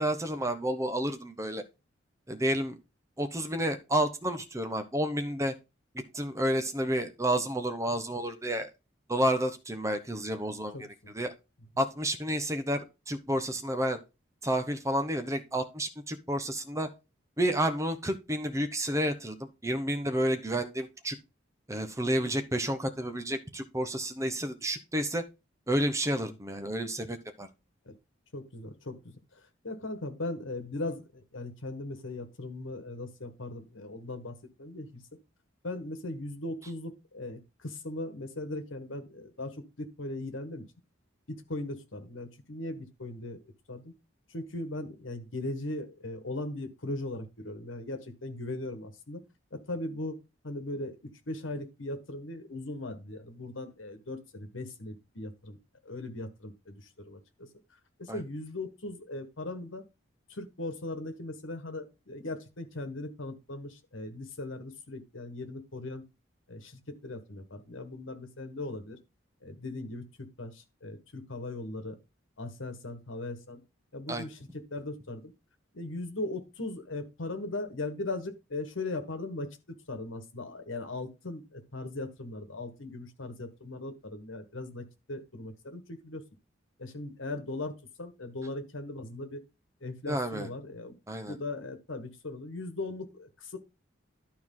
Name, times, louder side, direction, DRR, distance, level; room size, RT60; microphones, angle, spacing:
voice 1, 0.0-1.6 2.3-2.8 3.2-5.5 6.1-8.7 9.1-10.7 11.1-11.3 11.8-14.0 14.4-16.9 17.4-21.2 21.7-25.2 25.7-27.5 58.1-58.2 74.1-74.2 90.1-90.5 91.1-91.4, right 1 dB, 15° right, 8 dB, 0.8 m, -30 dB
voice 2, 10.7-11.1 27.8-28.0 28.3-35.0 35.6-40.6 41.3-43.4 43.7-43.9 44.3-49.2 49.5-50.2 50.4-55.6 55.8-57.5 58.0-59.8 60.3-66.0 66.5-69.0 69.4-72.0 72.4-73.6 73.9-75.3 75.7-86.2 86.8-89.4 89.8-91.0 91.3-93.6, left 2 dB, 75° left, 8 dB, 1.4 m, -39 dB
11.5 x 4.6 x 3.8 m, 0.27 s
head